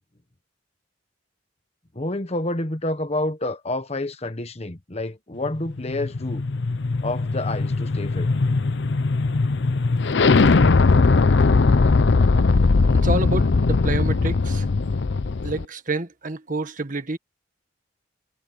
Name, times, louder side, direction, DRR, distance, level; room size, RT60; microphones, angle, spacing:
voice 1, 1.9-6.4 7.0-8.3, left 2 dB, 35° left, 1.3 m, -29 dB
sound 1, 5.5-15.6, left 3 dB, 65° left, 0.6 m, -20 dB
voice 2, 13.0-14.7 15.4-17.2, right 2 dB, 45° right, 1.7 m, -28 dB
head